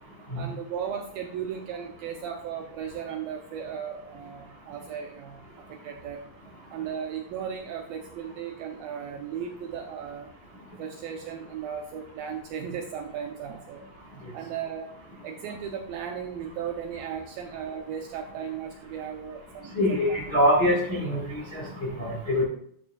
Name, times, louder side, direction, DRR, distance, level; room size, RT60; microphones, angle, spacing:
voice 1, 0.3-6.2 6.7-10.3 10.8-13.8 14.3-14.9 15.2-20.2, right 8 dB, 80° right, 3 dB, 2.1 m, -36 dB
voice 2, 19.7-22.4, equal, 75° left, -3 dB, 0.5 m, -24 dB
11.5 x 8.1 x 2.4 m, 0.66 s
omnidirectional pair, 4.9 m